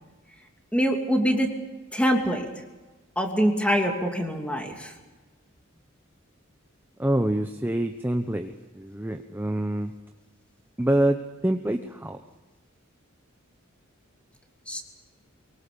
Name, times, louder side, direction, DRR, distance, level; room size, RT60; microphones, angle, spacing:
voice 1, 0.7-1.5 1.9-2.5 3.2-4.9 14.7-14.8, equal, 5° left, 2 dB, 2.9 m, -24 dB
voice 2, 7.0-9.9 10.8-12.2, right 1 dB, 10° right, 6 dB, 0.9 m, -26 dB
24.0 x 23.0 x 6.9 m, 1.2 s
head